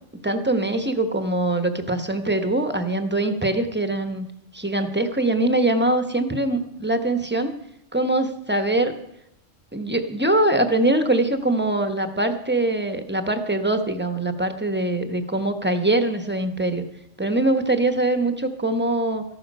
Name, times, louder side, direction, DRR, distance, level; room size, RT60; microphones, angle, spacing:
voice 1, 0.2-4.3 4.5-7.5 7.9-9.0 9.7-16.8 17.2-19.2, right 2 dB, 10° right, 8 dB, 1.0 m, -23 dB
14.0 x 11.5 x 5.4 m, 0.80 s
omnidirectional pair, 1.3 m